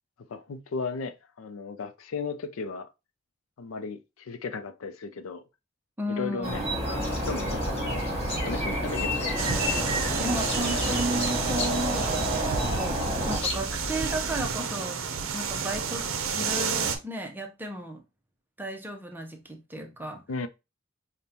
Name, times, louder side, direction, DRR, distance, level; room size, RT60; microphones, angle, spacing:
voice 1, 0.3-2.9 3.6-5.4 6.1-6.6 6.9-8.1 8.4-9.4 20.3-20.5, left 4 dB, 85° left, 0.4 m, -35 dB
voice 2, 6.0-6.7 10.2-13.0 13.3-15.0 15.3-18.0 18.6-20.2, right 1 dB, 10° right, 0.6 m, -34 dB
sound 1, 6.4-13.4, equal, 30° right, 1.1 m, -29 dB
sound 2, 6.8-14.4, left 1 dB, 30° left, 1.2 m, -36 dB
sound 3, 9.4-17.0, right 6 dB, 75° right, 0.6 m, -31 dB
5.2 x 2.1 x 2.8 m
head